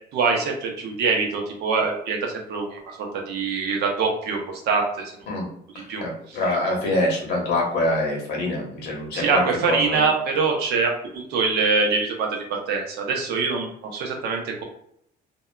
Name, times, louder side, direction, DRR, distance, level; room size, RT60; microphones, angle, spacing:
voice 1, 0.1-5.1 5.9-6.4 9.1-14.6, right 4 dB, 80° right, 1 dB, 0.7 m, -24 dB
voice 2, 6.0-10.0, left 1 dB, 85° left, -2 dB, 1.0 m, -25 dB
2.7 x 2.2 x 2.2 m, 0.70 s
cardioid pair, 110°, 17 cm